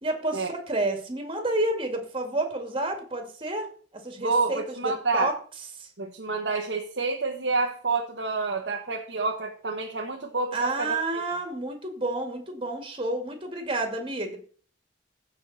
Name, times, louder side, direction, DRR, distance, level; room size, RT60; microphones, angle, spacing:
voice 1, 0.0-5.4 5.8-5.9 10.5-14.4, right 2 dB, 30° right, 5 dB, 2.3 m, -30 dB
voice 2, 4.2-5.3 6.0-11.0, right 3 dB, 90° right, 0 dB, 1.3 m, -28 dB
15.5 x 5.7 x 4.2 m, 0.43 s
head